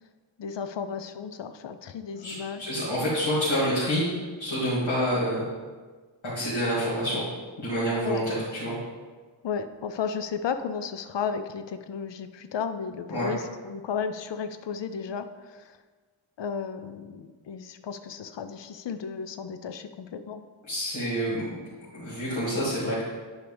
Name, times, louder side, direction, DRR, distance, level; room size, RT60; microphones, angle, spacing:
voice 1, 0.4-2.7 8.0-8.3 9.4-15.8 16.4-20.4, left 6 dB, 65° left, 9 dB, 0.6 m, -34 dB
voice 2, 2.2-4.0 4.4-5.5 6.2-7.2 7.6-8.8 13.1-13.3 20.7-21.6 21.9-23.0, equal, 90° left, -10 dB, 2.4 m, -27 dB
10.5 x 4.9 x 3.4 m, 1.4 s
wide cardioid pair, 85°, 46 cm